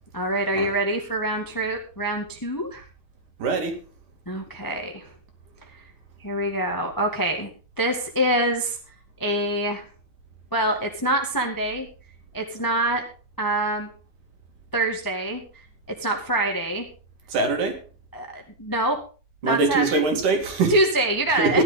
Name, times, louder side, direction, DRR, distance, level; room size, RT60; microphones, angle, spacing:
voice 1, 0.1-2.8 4.2-5.1 6.2-7.5 7.8-8.8 9.2-9.8 10.5-11.9 12.3-13.0 13.4-13.9 14.7-15.4 16.0-16.8 18.1-19.0 19.4-20.0 20.7-21.6, right 1 dB, 20° left, 3 dB, 0.5 m, -25 dB
voice 2, 3.4-3.7 17.3-17.8 19.4-20.7 21.4-21.6, right 3 dB, 60° right, 4 dB, 3.7 m, -22 dB
15.5 x 11.0 x 3.7 m, 0.36 s
omnidirectional pair, 4.3 m